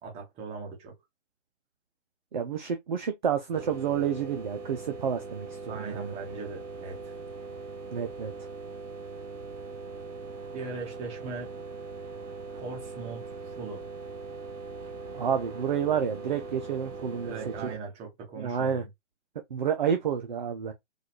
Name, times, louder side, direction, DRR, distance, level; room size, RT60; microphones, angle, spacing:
voice 1, 0.0-0.9 5.7-7.1 10.5-11.5 12.5-13.8 17.2-18.9, right 4 dB, 15° right, 1.1 m, -39 dB
voice 2, 2.3-6.1 7.9-8.5 15.1-17.3 17.6-17.7 18.4-18.8 19.5-20.7, right 7 dB, 40° right, 0.4 m, -29 dB
sound 1, 3.5-17.8, right 3 dB, 70° right, 1.2 m, -41 dB
3.9 x 2.3 x 3.0 m
figure-of-eight pair, 130°, 38 cm